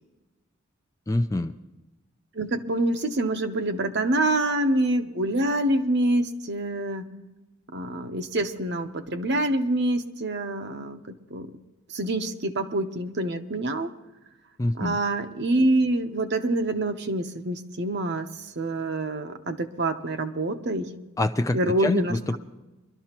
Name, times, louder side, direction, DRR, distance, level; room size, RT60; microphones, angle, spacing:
voice 1, 1.1-1.5 14.6-15.0 21.2-22.4, left 1 dB, 15° left, 8 dB, 0.4 m, -25 dB
voice 2, 2.3-7.1 7.7-11.5 11.9-13.9 14.7-20.9 21.5-22.4, right 1 dB, 55° right, 7 dB, 0.9 m, -26 dB
24.0 x 12.5 x 2.9 m, 1.1 s
head